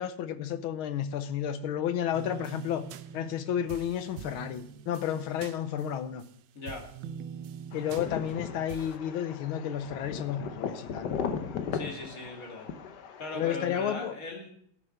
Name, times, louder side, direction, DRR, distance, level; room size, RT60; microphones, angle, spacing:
voice 1, 0.0-2.8 3.1-6.2 7.7-11.2 13.3-14.1, left 9 dB, 90° left, 1.7 m, -32 dB
sound 1, 2.1-6.3 6.7-9.0, right 8 dB, 80° right, 1.4 m, -44 dB
voice 2, 6.5-6.9 11.7-12.7 13.2-14.5, left 3 dB, 40° left, 2.6 m, -38 dB
sound 2, 7.7-13.5, left 7 dB, 60° left, 1.3 m, -37 dB
14.0 x 6.4 x 5.7 m
omnidirectional pair, 2.2 m